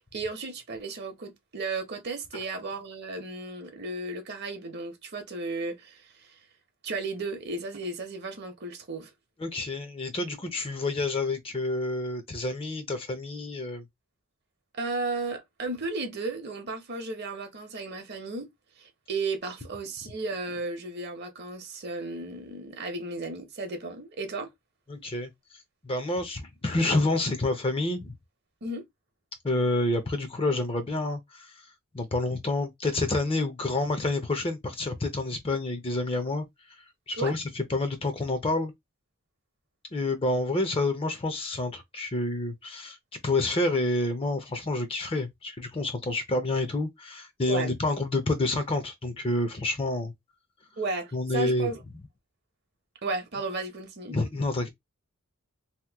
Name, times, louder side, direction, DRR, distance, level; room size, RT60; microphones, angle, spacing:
voice 1, 0.0-6.4 6.8-9.1 14.7-18.5 18.8-24.5 28.6-28.8 37.2-37.3 47.5-47.8 50.8-51.8 53.0-54.2, right 3 dB, 50° right, 0.8 m, -34 dB
voice 2, 9.4-13.8 24.9-28.1 29.4-38.7 39.9-43.0 43.2-50.1 51.1-51.7 54.1-54.7, left 2 dB, 25° left, 0.6 m, -28 dB
2.9 x 2.2 x 3.4 m
head